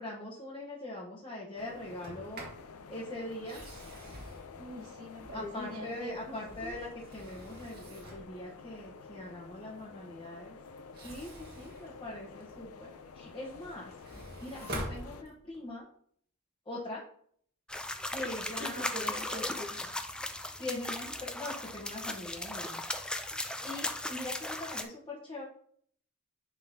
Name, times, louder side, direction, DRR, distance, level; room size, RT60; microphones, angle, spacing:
voice 1, 0.0-2.4 2.9-3.6 5.3-10.6 11.0-11.3 11.5-13.9 14.4-15.9 16.7-17.0 18.1-19.5 20.6-22.8 23.6-25.4, left 1 dB, 25° left, -6 dB, 1.1 m, -42 dB
sound 1, 1.6-15.2, left 5 dB, 85° left, 0.5 m, -50 dB
Sliding door, 1.9-2.7 3.3-5.7 6.2-8.4 10.8-12.7 13.2-15.7, equal, 45° right, 1.8 m, -46 dB
voice 2, 4.5-6.7 14.1-14.2 18.6-20.0, left 1 dB, 75° right, -2 dB, 2.7 m, -43 dB
sound 2, 17.7-24.8, left 1 dB, 5° left, 0.4 m, -37 dB
10.5 x 3.7 x 2.8 m, 0.63 s
head